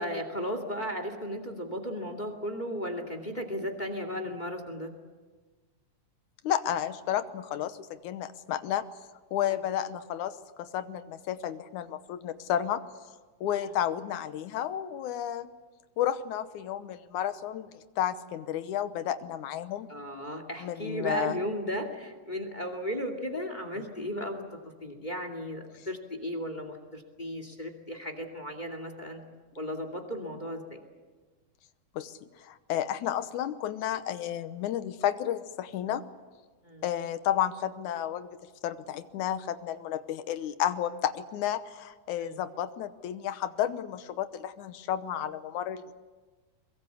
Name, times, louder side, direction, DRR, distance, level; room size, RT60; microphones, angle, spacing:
voice 1, 0.0-4.9 9.5-9.6 13.6-13.7 19.9-24.4 24.8-29.2 29.6-30.8 36.6-36.8 42.2-42.4, equal, 15° left, 6 dB, 2.3 m, -35 dB
voice 2, 6.4-8.9 9.3-12.8 13.4-15.5 16.0-19.9 20.6-21.4 32.0-36.0 36.8-45.9, left 10 dB, 80° left, 12 dB, 2.4 m, -32 dB
23.0 x 22.5 x 8.3 m, 1.4 s
omnidirectional pair, 3.5 m